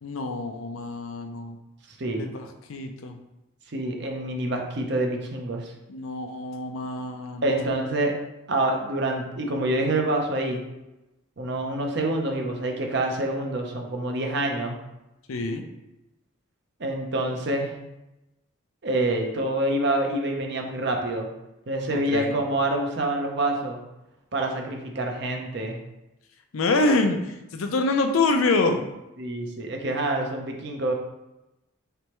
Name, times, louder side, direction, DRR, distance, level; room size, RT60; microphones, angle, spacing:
voice 1, 0.0-1.6 2.1-3.2 5.9-7.7 15.3-15.6 21.9-22.4 26.5-28.8, left 3 dB, 80° left, 5 dB, 0.5 m, -26 dB
voice 2, 3.7-5.7 7.4-8.1 8.5-10.6 11.4-14.8 16.8-17.7 18.8-21.3 21.7-23.8 24.3-25.8 29.2-30.9, right 1 dB, 55° right, 2 dB, 0.6 m, -26 dB
4.2 x 3.3 x 3.0 m, 0.95 s
head